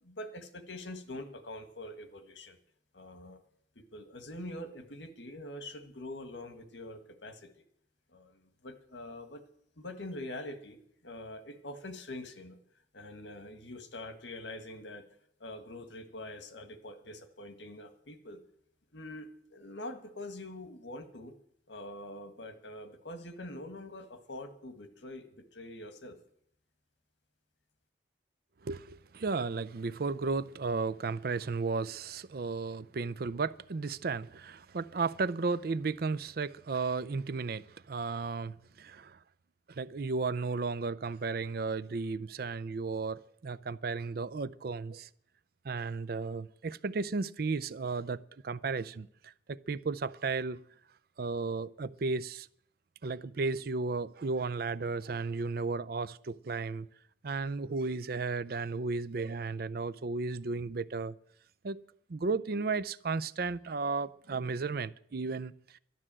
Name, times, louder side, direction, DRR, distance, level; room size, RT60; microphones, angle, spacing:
voice 1, 0.0-2.6 2.9-3.4 3.8-7.5 8.1-9.4 9.8-10.8 11.0-12.6 12.9-15.1 15.4-18.4 18.9-21.4 21.7-26.2, left 1 dB, 75° left, 1.6 m, -44 dB
voice 2, 28.6-39.2 39.7-45.1 45.6-50.6 51.2-52.5 53.0-56.9 57.2-61.1 61.6-61.8 62.1-65.8, right 4 dB, 55° right, 0.5 m, -34 dB
12.0 x 11.0 x 7.6 m
head